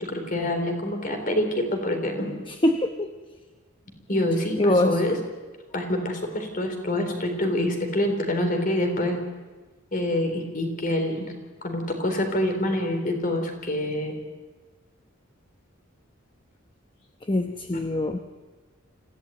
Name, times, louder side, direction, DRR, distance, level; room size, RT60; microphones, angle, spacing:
voice 1, 0.0-2.4 4.1-5.2 5.7-9.2 9.9-11.3 11.6-14.1, left 1 dB, 40° left, 5 dB, 3.9 m, -26 dB
voice 2, 2.5-3.1 4.6-5.0 17.2-18.2, left 1 dB, 25° left, 7 dB, 0.9 m, -23 dB
25.5 x 15.5 x 9.3 m, 1.3 s
head